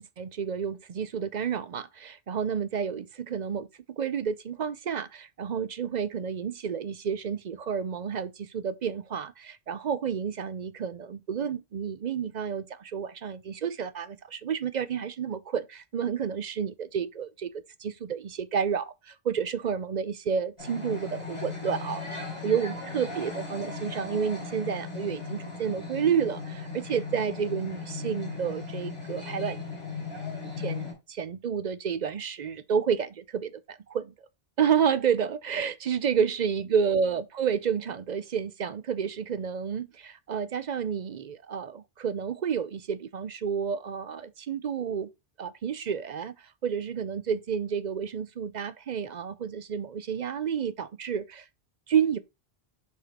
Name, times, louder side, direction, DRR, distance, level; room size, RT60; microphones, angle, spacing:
voice 1, 0.2-22.0 22.4-29.6 30.6-34.1 34.6-45.1 45.4-51.5 51.9-52.2, right 7 dB, 50° right, 0.6 m, -30 dB
sound 1, 20.6-30.9, left 4 dB, 30° left, 3.8 m, -37 dB
5.9 x 5.6 x 2.9 m
omnidirectional pair, 1.0 m